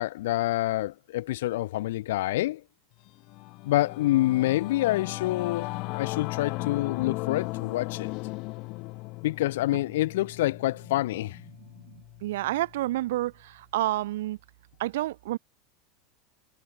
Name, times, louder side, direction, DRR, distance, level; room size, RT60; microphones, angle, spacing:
voice 1, 0.0-2.6 3.6-8.1 9.2-11.4, left 16 dB, 80° left, 1.6 m, -27 dB
Singing / Musical instrument, 3.1-12.8, left 25 dB, 45° left, 1.5 m, -37 dB
voice 2, 11.9-14.4 14.8-15.4, right 16 dB, 85° right, 1.3 m, -29 dB
supercardioid pair, 160°, 0 cm